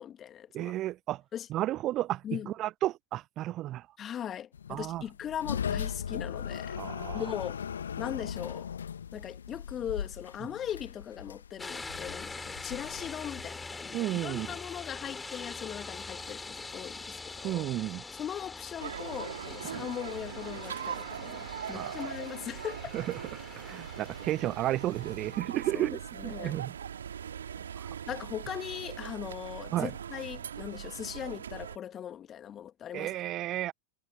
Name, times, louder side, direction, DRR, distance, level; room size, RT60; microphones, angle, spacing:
voice 1, 0.0-0.7 1.3-1.5 2.2-2.5 4.0-6.8 7.1-7.6 8.0-8.7 9.1-17.7 18.1-22.8 25.7-26.5 28.1-33.1, left 10 dB, 25° left, 2.4 m, -39 dB
voice 2, 0.5-1.2 1.5-3.8 4.7-5.0 6.8-7.2 13.9-14.5 17.4-18.0 19.7-19.8 21.7-22.0 22.9-26.7 27.8-27.9 29.7-29.9 32.9-33.7, right 14 dB, 35° right, 0.9 m, -33 dB
sound 1, 4.5-13.6, left 7 dB, 70° left, 2.3 m, -38 dB
sound 2, 11.6-25.4, left 3 dB, 10° left, 4.9 m, -43 dB
sound 3, 18.8-31.8, right 8 dB, 65° right, 2.6 m, -41 dB
figure-of-eight pair, 90°, 0 cm